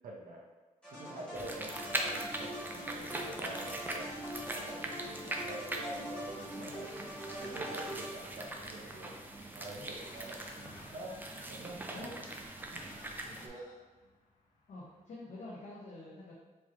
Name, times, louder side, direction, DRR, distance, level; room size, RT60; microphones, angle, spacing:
voice 1, 0.0-0.4 0.9-4.1 4.5-6.9 7.4-9.1 9.5-10.6 10.9-11.2 11.5-12.1 12.7-12.9 13.3-13.6, right 2 dB, 80° right, -2 dB, 0.8 m, -46 dB
sound 1, 0.8-8.5, equal, 5° left, 1.5 m, -44 dB
sound 2, 1.3-13.5, right 1 dB, 15° right, 0.4 m, -41 dB
Laughter, 9.9-15.0, left 2 dB, 85° left, 1.0 m, -58 dB
voice 2, 14.7-16.3, left 2 dB, 60° left, -7 dB, 0.9 m, -48 dB
4.4 x 3.1 x 3.1 m, 1.3 s
wide cardioid pair, 130°, 14 cm